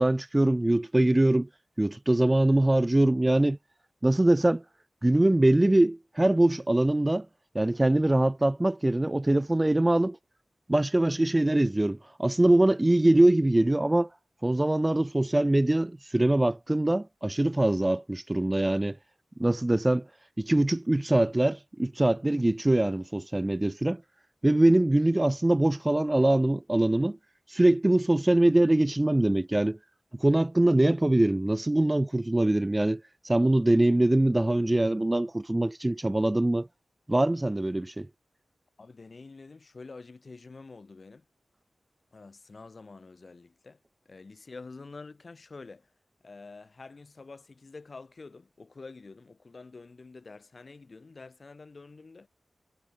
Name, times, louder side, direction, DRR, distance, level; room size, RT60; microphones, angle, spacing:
voice 1, 0.0-1.5 1.8-3.6 4.0-4.6 5.0-7.3 7.5-10.2 10.7-14.1 14.4-19.0 19.4-20.1 20.4-24.0 24.4-27.2 27.5-29.8 30.2-36.7 37.1-38.1, right 1 dB, 20° right, 0.4 m, -23 dB
voice 2, 38.8-41.2 42.1-43.8 44.1-45.9 46.2-52.3, left 3 dB, 50° left, 7.6 m, -47 dB
wide cardioid pair, 90°, 0 cm